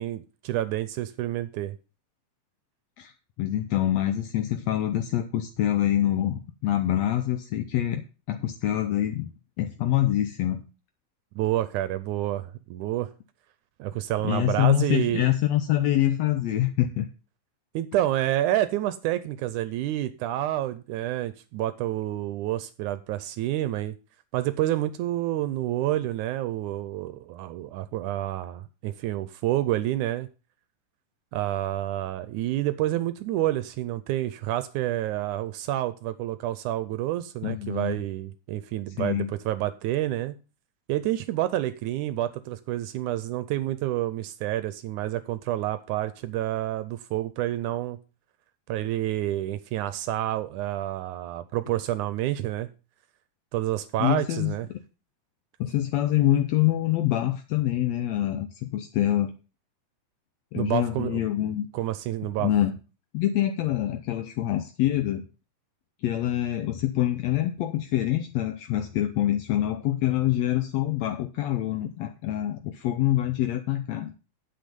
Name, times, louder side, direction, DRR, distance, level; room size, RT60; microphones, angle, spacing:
voice 1, 0.0-1.8 11.4-13.1 13.8-15.3 17.7-24.0 24.3-30.3 31.3-40.4 40.9-48.0 48.7-52.7 53.5-54.7 60.6-61.2 61.7-62.5, right 14 dB, 80° right, 1.9 m, -28 dB
voice 2, 3.4-8.0 8.3-9.3 9.6-10.6 14.2-17.1 37.4-38.0 39.0-39.3 54.0-54.8 55.6-59.3 60.5-61.7 62.4-62.7 63.1-65.3 66.0-74.1, left 13 dB, 75° left, 1.6 m, -25 dB
9.1 x 7.9 x 5.1 m
omnidirectional pair, 3.8 m